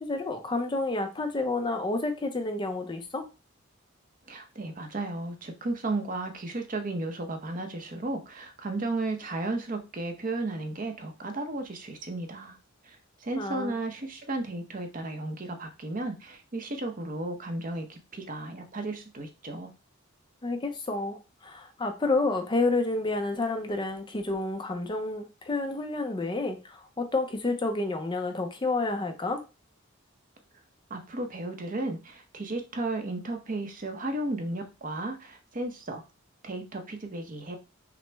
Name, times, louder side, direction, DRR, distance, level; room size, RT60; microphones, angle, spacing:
voice 1, 0.0-3.3 13.3-13.8 20.4-29.4, left 2 dB, 20° left, 5 dB, 0.5 m, -30 dB
voice 2, 4.3-12.6 12.8-19.7 30.9-36.0 36.4-37.6, right 2 dB, 40° right, 5 dB, 0.7 m, -34 dB
5.9 x 2.1 x 3.3 m, 0.29 s
head